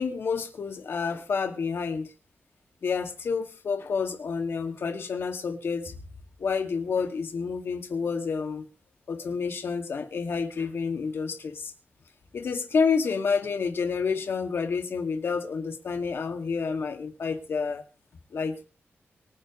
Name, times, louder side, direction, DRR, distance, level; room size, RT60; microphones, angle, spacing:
voice 1, 0.0-2.1 2.8-6.0 6.4-8.6 9.1-11.7 12.3-17.8 18.3-18.6, left 5 dB, 65° left, 2.4 m, -29 dB
24.5 x 10.5 x 3.3 m
wide cardioid pair, 150°, 4 cm